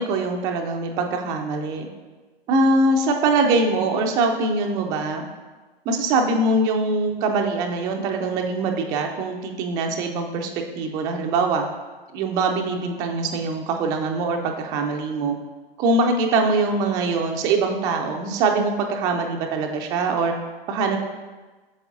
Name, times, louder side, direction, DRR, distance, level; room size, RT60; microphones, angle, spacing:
voice 1, 0.0-1.9 2.5-5.2 5.9-11.6 12.1-15.3 15.8-20.3 20.7-21.0, right 3 dB, 15° right, 3 dB, 0.3 m, -23 dB
8.0 x 6.6 x 2.4 m, 1.3 s
figure-of-eight pair, 105°, 29 cm